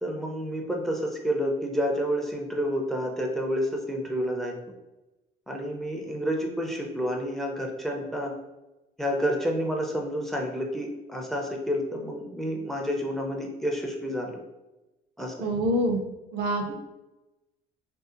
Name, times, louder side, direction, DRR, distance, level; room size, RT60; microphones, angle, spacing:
voice 1, 0.0-4.5 5.5-8.3 9.0-14.4 15.2-15.5 16.7-16.8, equal, ahead, 1 dB, 0.4 m, -29 dB
voice 2, 15.4-16.0 16.3-16.6, right 1 dB, 80° right, 3 dB, 0.4 m, -25 dB
2.6 x 2.3 x 2.4 m, 1.0 s
cardioid pair, 110°, 17 cm